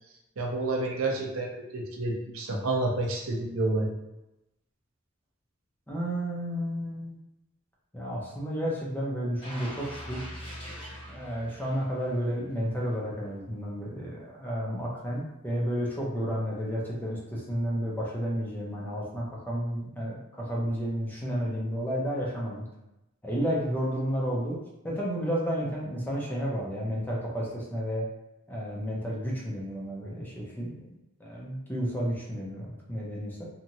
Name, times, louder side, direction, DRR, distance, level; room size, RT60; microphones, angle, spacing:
voice 1, 0.4-3.9, right 2 dB, 75° right, 0 dB, 0.6 m, -29 dB
voice 2, 5.9-7.2 7.9-10.2 11.1-22.6 23.2-24.6 24.8-28.0 28.5-30.9 31.2-33.5, equal, 10° left, -5 dB, 0.6 m, -31 dB
sound 1, 9.4-12.4 12.8-12.9, equal, 25° left, 1.0 m, -42 dB
2.9 x 2.4 x 2.7 m, 0.91 s
head